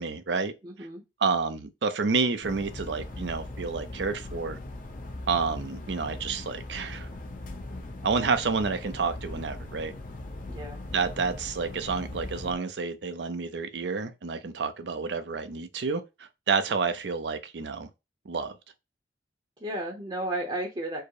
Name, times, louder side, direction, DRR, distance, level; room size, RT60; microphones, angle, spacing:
voice 1, 0.0-0.5 1.2-4.6 5.3-7.1 8.0-9.9 10.9-17.9 18.3-18.6, right 4 dB, 80° right, 0.5 m, -29 dB
voice 2, 0.6-1.0 10.5-10.8 19.6-21.0, right 1 dB, 30° right, 0.7 m, -33 dB
sound 1, 2.4-12.5, left 2 dB, 50° left, 0.7 m, -40 dB
4.6 x 2.0 x 4.6 m
head